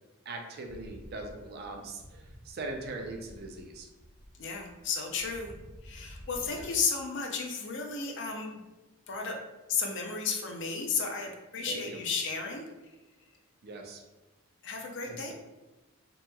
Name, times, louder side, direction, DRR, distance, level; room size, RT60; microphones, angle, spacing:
voice 1, 0.3-3.9 6.5-6.7 11.7-12.0 13.6-14.0 15.0-15.3, right 2 dB, 45° right, 3 dB, 0.4 m, -41 dB
sound 1, 0.6-6.7, equal, 65° right, 1.1 m, -51 dB
voice 2, 4.4-5.5 5.8-8.5 9.1-9.4 9.7-12.7 14.6-15.3, left 5 dB, 55° left, 2 dB, 0.4 m, -33 dB
2.9 x 2.7 x 2.2 m, 1.1 s
head